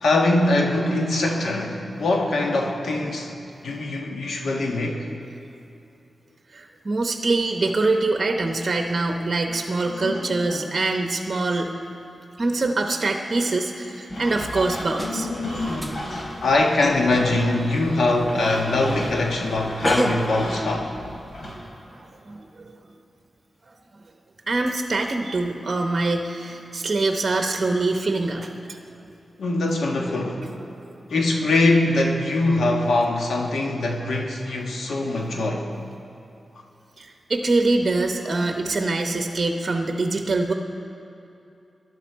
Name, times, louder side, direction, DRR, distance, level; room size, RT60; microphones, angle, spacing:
voice 1, 0.0-3.4 3.6-5.1 8.4-8.5 9.9-10.7 15.0-16.1 16.4-20.9 29.4-30.5 31.1-35.7, left 2 dB, 90° left, 1 dB, 1.4 m, -23 dB
voice 2, 6.5-11.7 12.4-15.3 21.5-22.6 24.5-28.8 30.8-31.0 37.0-40.5, right 3 dB, 45° right, 4 dB, 0.9 m, -24 dB
sound 1, 14.1-21.6, equal, 55° left, 3.2 m, -35 dB
sound 2, 15.0-20.3, right 1 dB, ahead, 0.8 m, -32 dB
19.0 x 11.5 x 4.6 m, 2.7 s
wide cardioid pair, 90°, 0 cm